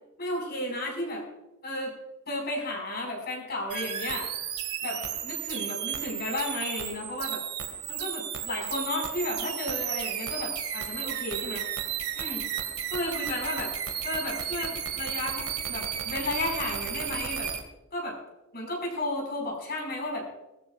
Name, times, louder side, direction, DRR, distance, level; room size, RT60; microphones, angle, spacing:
voice 1, 0.2-1.2 1.6-1.9 2.3-4.3 4.8-7.4 7.9-11.6 12.2-12.4 12.9-13.7 14.0-17.5 17.9-18.2 18.5-20.3, left 1 dB, 45° left, 0 dB, 5.3 m, -33 dB
sound 1, 3.7-17.6, right 9 dB, 90° right, 2.1 m, -33 dB
21.0 x 13.5 x 2.5 m, 0.99 s
head